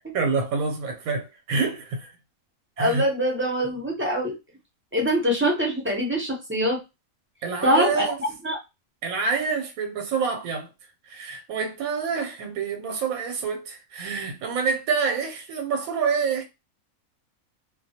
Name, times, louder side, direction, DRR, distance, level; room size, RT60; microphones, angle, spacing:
voice 1, 0.1-2.1 2.8-3.0 7.4-8.2 9.0-10.7 11.1-16.4, right 5 dB, 85° right, 1.1 m, -27 dB
voice 2, 2.8-4.3 4.9-6.8 7.6-8.6, equal, 15° right, 0.5 m, -24 dB
2.3 x 2.2 x 2.7 m
omnidirectional pair, 1.4 m